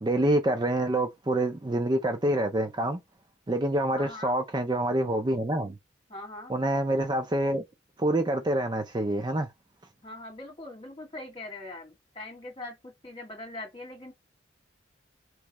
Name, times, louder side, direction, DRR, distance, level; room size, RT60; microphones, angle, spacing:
voice 1, 0.0-3.0 3.5-5.7 6.5-7.6 8.0-9.5, right 1 dB, 20° right, 0.4 m, -26 dB
voice 2, 3.9-4.3 6.1-6.5 10.0-14.1, left 2 dB, 25° left, 1.8 m, -42 dB
4.7 x 3.1 x 2.9 m
head